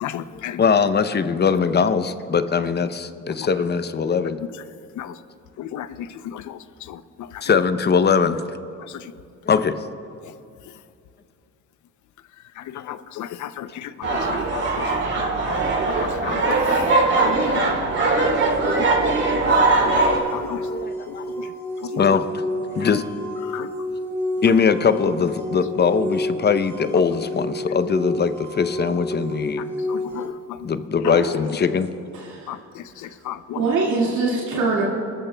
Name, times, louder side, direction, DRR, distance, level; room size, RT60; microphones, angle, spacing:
voice 1, 0.0-0.6 5.0-5.1 5.7-5.9 12.9-13.3 13.6-13.7 16.2-16.6 19.3-19.4 20.3-20.6 23.5-23.7 30.1-30.3 32.5-32.6 33.3-33.4, left 11 dB, 75° left, 13 dB, 0.6 m, -31 dB
voice 2, 0.6-4.4 7.4-8.4 9.5-9.8 12.8-12.9 14.1-14.2 15.2-15.3 17.8-18.1 18.6-18.9 19.3-19.9 20.7-21.2 22.0-22.3 22.8-23.0 24.4-29.6 30.6-31.9, left 6 dB, 35° left, 11 dB, 0.6 m, -21 dB
sound 1, 14.0-20.2, right 3 dB, 50° right, 3.0 m, -20 dB
sound 2, 19.8-30.3, left 1 dB, 10° left, 2.5 m, -30 dB
voice 3, 31.0-31.4 32.1-32.5 33.6-34.8, right 3 dB, 75° right, -4 dB, 2.1 m, -23 dB
24.0 x 13.5 x 2.3 m, 2.5 s
cardioid pair, 90°, 30 cm